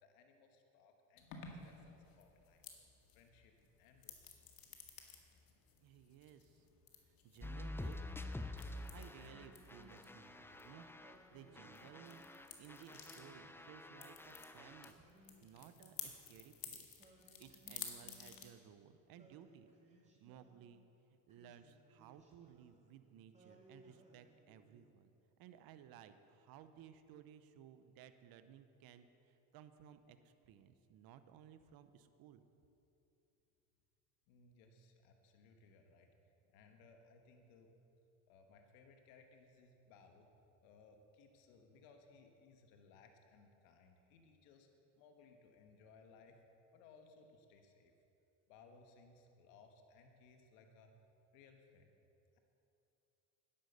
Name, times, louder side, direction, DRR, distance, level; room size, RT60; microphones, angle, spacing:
voice 1, 0.0-2.6 3.1-3.5 3.8-4.4 34.3-36.1 36.5-37.7 38.3-40.3 40.6-44.7 45.0-46.4 46.7-47.9 48.5-50.9 51.3-51.9, left 4 dB, 80° left, 4 dB, 1.3 m, -64 dB
sound 1, 1.2-18.5, left 7 dB, 60° left, 1.9 m, -55 dB
voice 2, 5.8-6.6 7.2-8.0 8.9-10.9 11.3-12.2 12.6-17.0 17.4-19.7 20.2-20.8 21.3-25.1 25.4-32.5, right 9 dB, 60° right, 10 dB, 0.9 m, -59 dB
sound 2, 7.4-11.3 11.5-14.9, left 1 dB, 5° left, 0.6 m, -48 dB
Singing, 8.9-10.4 11.0-12.4 13.0-14.3 14.9-16.4 17.0-18.8 19.2-20.8 21.3-22.9 23.3-25.0, right 1 dB, 15° right, 2.5 m, -66 dB
10.5 x 9.5 x 6.8 m, 2.9 s
supercardioid pair, 80°, 40 cm